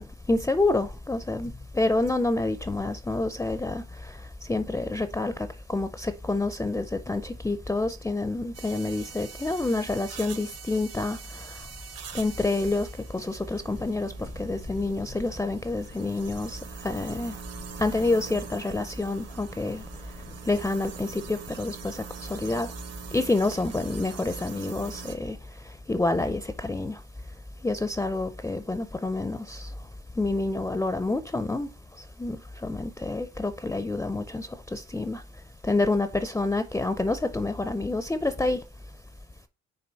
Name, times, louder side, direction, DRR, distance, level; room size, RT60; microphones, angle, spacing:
voice 1, 0.0-3.8 4.5-11.5 12.1-12.9 13.1-17.3 17.8-19.8 20.5-22.7 23.1-25.4 25.9-27.0 27.6-29.7 30.2-31.7 32.2-35.2 35.6-38.6, left 2 dB, 10° left, 0.5 m, -28 dB
sound 1, 8.5-25.2, right 7 dB, 55° right, 1.0 m, -43 dB
6.2 x 3.7 x 4.5 m
cardioid pair, 90°, 30 cm